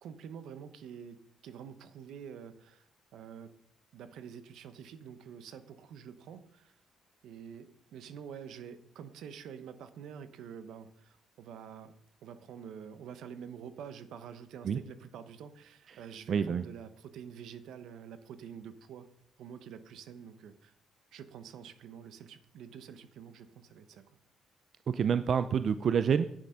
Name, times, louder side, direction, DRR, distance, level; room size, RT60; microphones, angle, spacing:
voice 1, 0.0-3.5 3.9-6.7 7.2-11.9 12.2-19.1 19.4-20.7 21.1-24.1, right 7 dB, 80° right, 12 dB, 1.0 m, -47 dB
voice 2, 16.3-16.7 24.9-26.2, right 7 dB, 55° right, 12 dB, 0.5 m, -27 dB
10.0 x 9.1 x 5.7 m, 0.73 s
cardioid pair, 90°, 0 cm